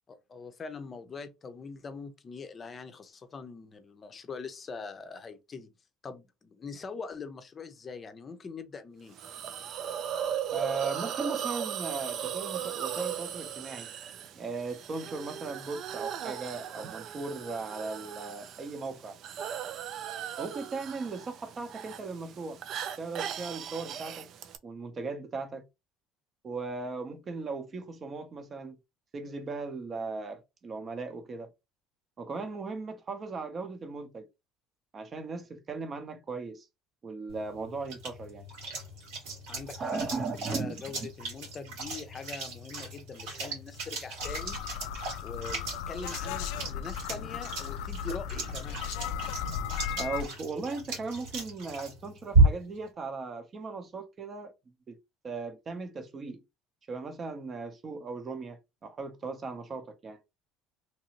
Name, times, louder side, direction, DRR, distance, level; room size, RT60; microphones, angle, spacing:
voice 1, 0.1-5.7 6.0-9.2 39.5-40.3 40.5-44.6 45.2-48.8, left 4 dB, 30° left, 0.6 m, -43 dB
Hiss, 9.2-24.6, right 9 dB, 55° right, 0.4 m, -37 dB
voice 2, 10.5-13.9 14.3-19.2 20.4-22.6 23.0-24.3 24.6-25.7 26.4-28.8 29.1-31.5 32.2-34.3 34.9-36.7 37.0-38.5 39.8-41.1 50.0-54.5 54.9-55.0 55.2-56.4 56.9-60.2, right 4 dB, 35° right, 0.8 m, -37 dB
sound 1, 37.3-52.8, right 3 dB, 85° right, 1.8 m, -33 dB
sound 2, 44.2-50.2, left 8 dB, 85° left, 0.3 m, -36 dB
2.9 x 2.6 x 2.9 m
supercardioid pair, 100°, 0 cm